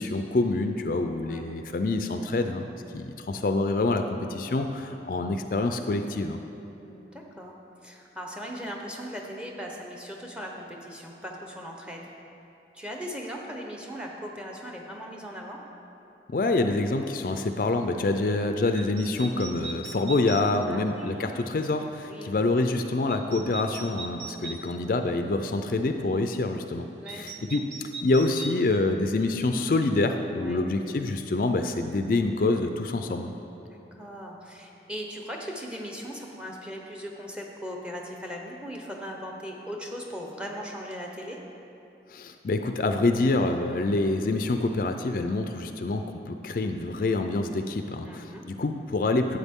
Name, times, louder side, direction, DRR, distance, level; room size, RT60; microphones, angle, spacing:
voice 1, 0.0-6.4 16.3-27.7 28.0-33.3 42.1-49.4, left 2 dB, 50° left, 6 dB, 0.4 m, -26 dB
voice 2, 6.8-7.5 7.8-12.0 12.7-15.6 20.7-21.5 22.1-22.3 24.4-24.8 27.0-27.4 30.4-30.6 33.7-41.4 48.0-48.4, equal, 5° right, 0 dB, 0.8 m, -39 dB
sound 1, 18.7-20.5 23.1-24.6 27.1-28.6, right 4 dB, 80° right, 0.7 m, -40 dB
12.0 x 8.3 x 3.6 m, 3.0 s
head